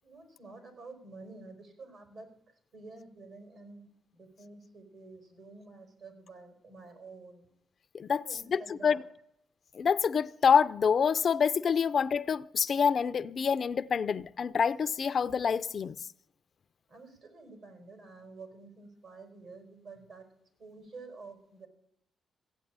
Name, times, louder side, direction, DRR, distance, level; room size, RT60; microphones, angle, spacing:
voice 1, 0.0-7.5 8.1-9.1 16.9-20.3 20.6-21.7, right 3 dB, 60° right, 4.4 m, -50 dB
voice 2, 7.9-9.0 9.7-16.0, left 6 dB, 55° left, 0.5 m, -27 dB
16.0 x 8.5 x 8.7 m
cardioid pair, 90°, 0 cm